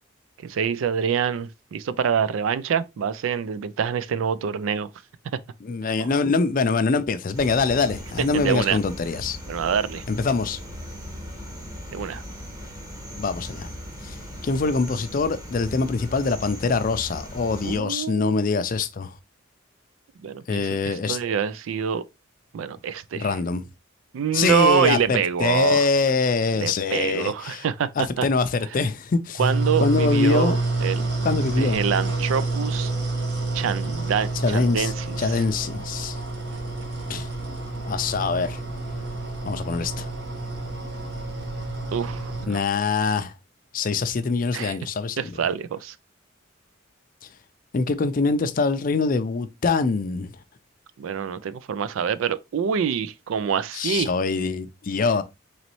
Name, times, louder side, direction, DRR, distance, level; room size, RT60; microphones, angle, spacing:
voice 1, 0.4-4.9 6.0-6.1 8.3-8.8 9.5-10.0 11.9-12.2 17.6-18.4 20.2-22.0 22.5-23.4 24.1-25.9 26.6-28.3 29.4-31.0 31.6-32.9 33.5-35.4 41.9-42.6 44.5-44.8 45.2-46.0 51.0-54.1, right 7 dB, 80° right, 0.3 m, -26 dB
voice 2, 5.6-9.4 10.1-10.6 13.2-13.7 14.0-14.2 14.4-19.1 20.5-21.2 23.1-23.6 24.3-27.6 28.0-29.4 29.8-30.6 31.2-31.8 34.4-34.9 35.2-36.2 37.1-37.3 37.8-38.6 39.5-40.1 42.5-43.3 43.7-45.3 47.7-50.3 53.7-55.2, left 4 dB, 45° left, 0.4 m, -24 dB
sound 1, 7.3-17.8, equal, 20° right, 1.1 m, -38 dB
sound 2, 29.4-42.5, right 2 dB, 60° right, 1.1 m, -28 dB
4.0 x 3.1 x 3.0 m
head